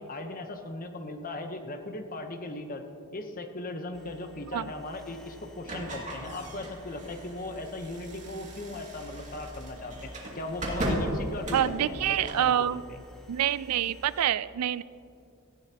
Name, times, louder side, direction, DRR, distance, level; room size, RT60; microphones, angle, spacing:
voice 1, 0.0-2.8 3.1-13.0, left 2 dB, 40° left, 6 dB, 1.0 m, -38 dB
sound 1, 3.9-14.2, equal, 5° left, 1.7 m, -50 dB
sound 2, 5.6-12.5, right 1 dB, 35° right, 2.3 m, -36 dB
voice 2, 11.5-12.8 13.3-14.8, right 10 dB, 80° right, 17 dB, 0.4 m, -26 dB
17.5 x 14.5 x 3.0 m, 2.4 s
head